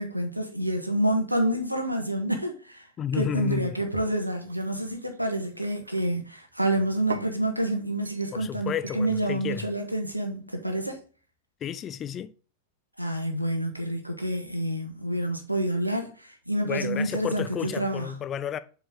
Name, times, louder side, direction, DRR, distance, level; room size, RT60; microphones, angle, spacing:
voice 1, 0.0-2.9 3.1-11.0 13.0-18.1, right 1 dB, 90° right, 1.4 m, -28 dB
voice 2, 3.0-3.8 8.3-9.7 11.6-12.3 16.6-18.6, left 9 dB, 30° left, 0.5 m, -32 dB
sound 1, 3.8-6.1 6.7-7.4 8.1-8.4 8.9-9.1, right 5 dB, 75° right, 0.5 m, -42 dB
7.4 x 4.9 x 3.5 m
figure-of-eight pair, 90°, 0 cm